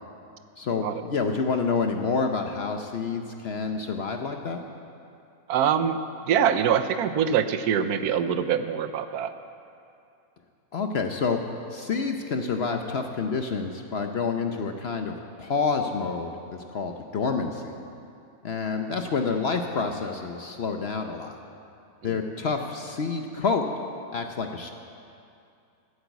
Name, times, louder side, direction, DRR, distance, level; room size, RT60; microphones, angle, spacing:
voice 1, 0.6-4.6 10.7-11.4 11.7-17.8 18.4-21.4 22.0-23.7 24.1-24.7, left 4 dB, 55° left, 5 dB, 0.8 m, -28 dB
voice 2, 5.5-6.0 6.3-9.3 22.0-22.2, right 8 dB, 75° right, 10 dB, 1.2 m, -24 dB
14.0 x 8.0 x 8.2 m, 2.5 s
omnidirectional pair, 1.6 m